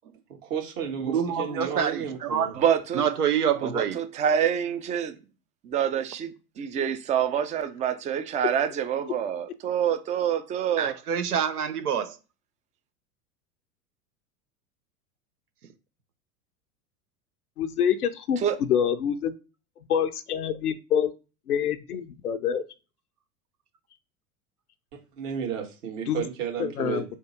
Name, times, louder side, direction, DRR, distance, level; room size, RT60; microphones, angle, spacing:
voice 1, 0.4-2.5 25.2-27.1, right 7 dB, 55° right, 1.7 m, -32 dB
voice 2, 1.0-2.6 2.9-4.0 10.8-12.2, right 8 dB, 80° right, 0.8 m, -26 dB
voice 3, 2.6-3.0 3.6-5.1 5.6-6.3 6.6-10.9 18.4-18.6, right 8 dB, 15° right, 0.4 m, -26 dB
voice 4, 17.6-19.3 19.9-21.1 21.5-22.6 26.1-26.2 26.6-27.0, left 8 dB, 75° left, 0.6 m, -26 dB
3.6 x 2.7 x 4.3 m
figure-of-eight pair, 85°, 45 cm